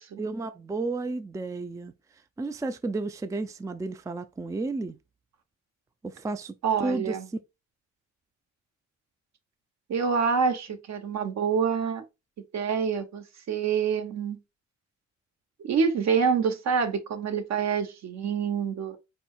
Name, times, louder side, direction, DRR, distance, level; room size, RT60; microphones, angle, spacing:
voice 1, 0.2-1.9 2.4-5.0 6.0-7.2, right 3 dB, 10° right, 0.4 m, -32 dB
voice 2, 6.6-7.3 9.9-12.0 12.5-14.4 15.6-19.0, right 6 dB, 60° right, 1.2 m, -26 dB
4.4 x 4.3 x 2.4 m
cardioid pair, 90°, 30 cm